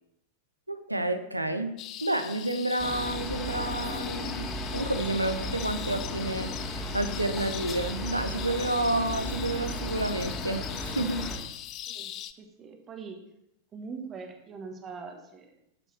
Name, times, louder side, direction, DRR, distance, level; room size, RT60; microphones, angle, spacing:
voice 1, 0.7-11.3, right 1 dB, 85° right, 8 dB, 0.7 m, -30 dB
sound 1, 1.8-12.3, left 12 dB, 35° left, 0.5 m, -40 dB
sound 2, 2.8-11.4, left 1 dB, 20° left, 2.0 m, -35 dB
voice 2, 11.9-13.2 13.7-15.5, right 5 dB, 25° right, 4 dB, 1.3 m, -42 dB
11.5 x 5.6 x 4.3 m, 0.79 s
figure-of-eight pair, 90°, 0 cm